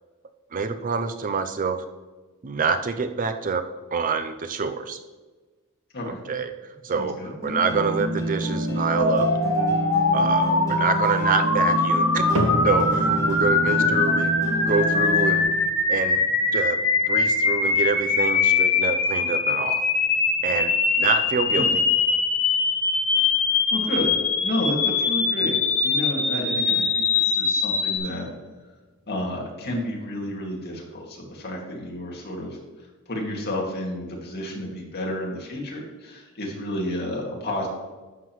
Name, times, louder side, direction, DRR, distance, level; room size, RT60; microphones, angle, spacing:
voice 1, 0.5-1.9 2.4-5.0 6.1-6.5 6.8-9.3 10.1-12.2 12.6-14.3 14.7-15.4 15.9-16.2 16.5-16.8 17.1-19.8 20.4-21.7, right 5 dB, 40° right, 9 dB, 0.5 m, -26 dB
voice 2, 6.9-7.3 13.8-13.9 21.5-21.8 23.7-24.1 24.4-25.6 25.8-28.3 29.1-32.6 33.1-37.7, left 1 dB, 50° left, -2 dB, 2.2 m, -31 dB
sound 1, 7.4-15.4, right 1 dB, 15° left, 2.7 m, -28 dB
sound 2, 9.0-28.0, left 4 dB, 80° left, 2.1 m, -22 dB
sound 3, 12.3-28.7 29.0-29.5 30.1-30.2 31.0-31.1, right 1 dB, 70° right, 1.2 m, -37 dB
11.5 x 7.4 x 3.1 m, 1.3 s
head